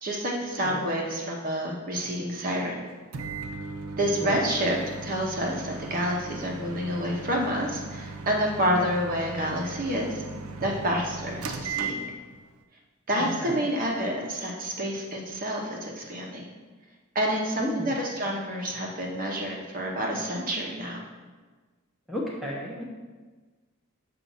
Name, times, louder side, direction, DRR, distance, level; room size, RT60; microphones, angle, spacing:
voice 1, 0.0-2.8 4.0-4.8 5.0-10.2 10.6-12.0 13.1-16.4 17.1-21.0, equal, 40° right, -1 dB, 0.9 m, -28 dB
Microwave oven, 3.1-12.5, right 4 dB, 80° right, 0.5 m, -37 dB
voice 2, 13.2-13.7 17.6-17.9 22.1-22.8, equal, ahead, -5 dB, 0.7 m, -33 dB
7.1 x 2.7 x 5.5 m, 1.3 s
head